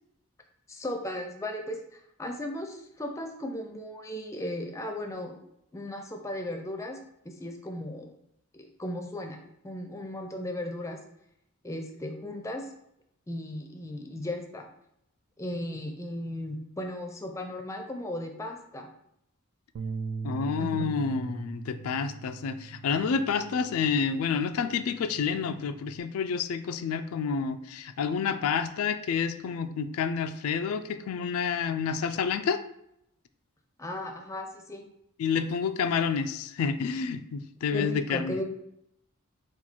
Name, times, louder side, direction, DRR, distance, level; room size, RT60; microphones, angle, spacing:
voice 1, 0.7-1.8 2.2-5.3 5.7-7.0 7.2-8.1 8.5-9.4 9.6-11.0 11.6-12.7 13.3-14.7 15.4-18.9 20.6-20.9 33.8-34.8 37.7-38.4, left 1 dB, 15° left, 4 dB, 0.4 m, -36 dB
Bass guitar, 19.7-24.2 24.6-26.0, right 5 dB, 75° right, 0.3 m, -40 dB
voice 2, 20.2-32.6 35.2-38.3, left 6 dB, 90° left, 10 dB, 0.3 m, -29 dB
4.1 x 2.3 x 4.3 m, 0.77 s
head